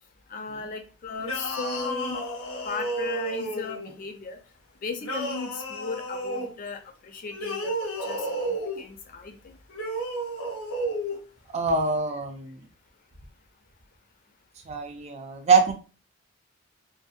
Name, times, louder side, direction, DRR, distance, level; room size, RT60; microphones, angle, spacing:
voice 1, 0.3-2.2 2.6-4.4 4.8-9.4, left 4 dB, 40° left, 6 dB, 0.4 m, -36 dB
sound 1, 1.2-3.9 5.0-6.5 7.3-8.8 9.7-11.2, right 1 dB, 85° left, 0.7 m, -32 dB
voice 2, 11.5-12.7 14.7-15.7, right 4 dB, 30° right, 5 dB, 0.3 m, -24 dB
2.6 x 2.1 x 2.4 m, 0.35 s
head